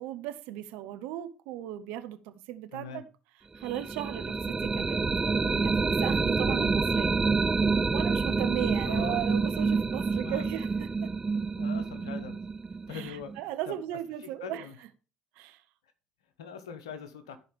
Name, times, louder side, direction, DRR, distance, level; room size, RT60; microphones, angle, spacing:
voice 1, 0.0-3.0 3.5-7.1 7.9-10.7 11.0-11.1 12.9-14.6 15.4-15.6, right 12 dB, 65° right, 1.0 m, -37 dB
voice 2, 2.7-3.0 8.8-9.3 10.1-10.5 11.6-12.4 12.9-13.8 14.2-14.8 16.4-17.4, left 6 dB, 80° left, 1.3 m, -42 dB
sound 1, 3.6-13.4, right 4 dB, 20° right, 0.4 m, -28 dB
14.5 x 4.8 x 3.4 m
hypercardioid pair, 60°, 3 cm